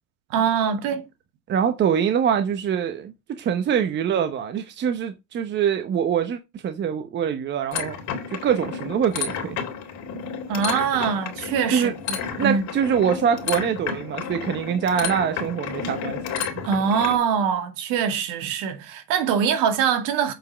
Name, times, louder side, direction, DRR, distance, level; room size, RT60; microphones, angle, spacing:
voice 1, 0.3-1.1 10.5-12.6 16.6-20.3, right 7 dB, 55° right, 2.2 m, -23 dB
voice 2, 1.5-8.0 8.4-9.6 11.7-11.9 12.4-16.2, right 8 dB, 30° right, 1.0 m, -24 dB
sound 1, 7.7-17.2, left 6 dB, 45° left, 3.1 m, -31 dB
7.6 x 5.4 x 6.2 m
supercardioid pair, 140°, 39 cm